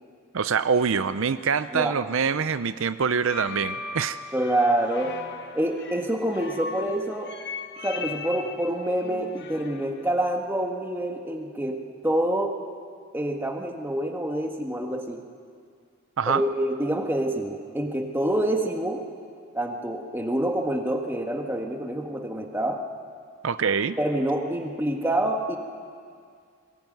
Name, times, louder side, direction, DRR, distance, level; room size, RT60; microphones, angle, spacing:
voice 1, 0.3-4.2 16.2-16.4 23.4-24.0, right 6 dB, 70° right, 13 dB, 0.5 m, -25 dB
sound 1, 3.0-10.0, left 4 dB, 50° left, 1.4 m, -38 dB
voice 2, 4.3-5.1 5.5-7.3 7.8-12.5 13.1-15.2 16.3-19.0 19.5-22.8 24.0-25.6, right 1 dB, 10° right, 3 dB, 1.6 m, -27 dB
22.0 x 18.5 x 9.3 m, 2.2 s
head